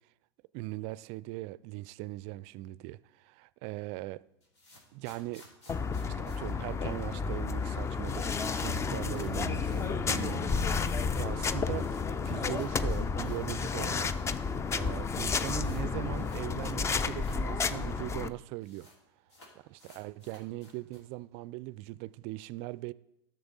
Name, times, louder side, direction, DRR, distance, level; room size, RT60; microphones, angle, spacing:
voice 1, 0.5-4.2 4.9-5.4 6.1-10.9 11.2-11.9 12.2-14.1 14.7-18.9 19.6-22.9, right 19 dB, 50° right, 0.4 m, -40 dB
sound 1, 4.4-7.4 7.6-7.7 8.0-8.1 8.4-13.6 13.9-14.0 14.7-14.8 15.0-17.7 17.9-18.0 18.2-19.0 19.3-21.2, left 1 dB, 85° left, 2.9 m, -57 dB
sound 2, 5.7-18.3, left 5 dB, 20° left, 0.5 m, -31 dB
12.5 x 6.6 x 4.1 m
hypercardioid pair, 90°, 14 cm